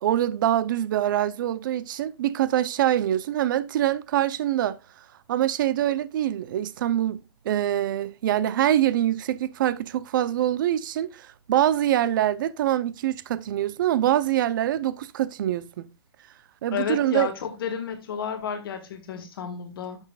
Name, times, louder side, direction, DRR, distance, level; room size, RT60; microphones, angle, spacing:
voice 1, 0.0-4.8 5.3-15.9 16.6-17.3, right 12 dB, 50° right, 0.7 m, -24 dB
voice 2, 16.7-20.0, left 7 dB, 55° left, 1.8 m, -31 dB
12.0 x 6.5 x 2.4 m
hypercardioid pair, 150°, 14 cm